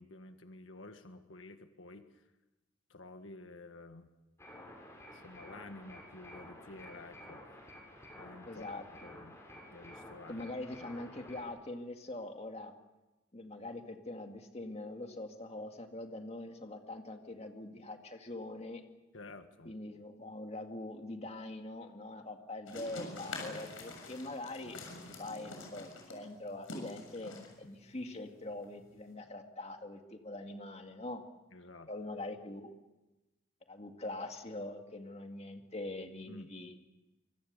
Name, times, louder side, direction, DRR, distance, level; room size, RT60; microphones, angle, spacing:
voice 1, 0.0-2.3 2.9-4.1 5.1-7.7 8.2-9.4 9.7-10.5 19.1-19.8 31.5-31.9 36.3-36.5, left 2 dB, 75° left, 7 dB, 1.7 m, -51 dB
sound 1, 4.4-11.5, left 1 dB, 15° left, 6.8 m, -52 dB
voice 2, 8.5-8.8 10.3-12.7 13.3-18.8 19.7-27.3 27.6-31.2 31.9-32.7 33.7-36.8, left 2 dB, 35° left, 5 dB, 2.1 m, -43 dB
sound 2, 22.7-29.1, left 2 dB, 90° left, 6.9 m, -46 dB
25.5 x 23.5 x 6.8 m, 1.1 s
head